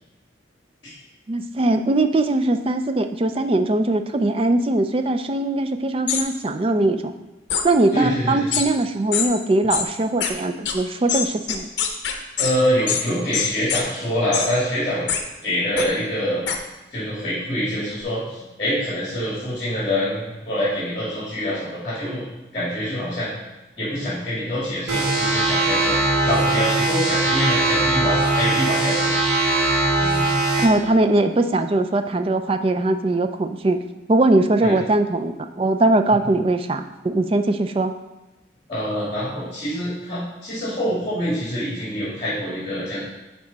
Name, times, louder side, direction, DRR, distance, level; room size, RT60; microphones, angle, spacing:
voice 1, 1.3-7.1 7.6-11.7 30.6-33.8 34.1-37.9, right 2 dB, 30° right, 8 dB, 0.3 m, -20 dB
sound 1, 6.1-6.2 7.5-7.6 8.5-8.7 9.1-9.3 9.7-9.9 10.2-10.3 10.7-10.8 11.1-12.5 12.9-13.0 13.3-13.8 14.3-14.5 15.1-15.2 15.8-15.9 16.5-16.6, left 8 dB, 65° left, 0.7 m, -23 dB
voice 2, 7.9-8.5 12.4-15.1 15.4-16.4 16.9-22.2 22.5-23.3 23.8-29.1 30.0-30.1 34.6-34.7 36.1-36.2 38.7-43.0, equal, 25° left, -9 dB, 2.2 m, -25 dB
sound 2, 24.9-30.6, right 2 dB, 80° right, 2.1 m, -20 dB
9.9 x 3.5 x 4.1 m, 1.1 s
head